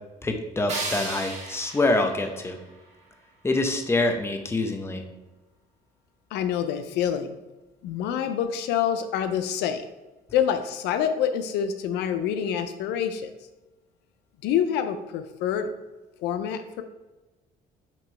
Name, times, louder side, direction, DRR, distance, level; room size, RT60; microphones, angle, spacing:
voice 1, 0.2-2.6 3.4-5.0, left 2 dB, 15° left, 4 dB, 0.8 m, -25 dB
sound 1, 0.7-3.7, right 3 dB, 40° right, 1.9 m, -36 dB
voice 2, 6.3-7.3 7.8-9.8 10.3-13.3 14.4-15.7 16.2-16.8, left 9 dB, 85° left, 9 dB, 0.5 m, -26 dB
6.1 x 3.0 x 5.6 m, 1.1 s
cardioid pair, 110°, 17 cm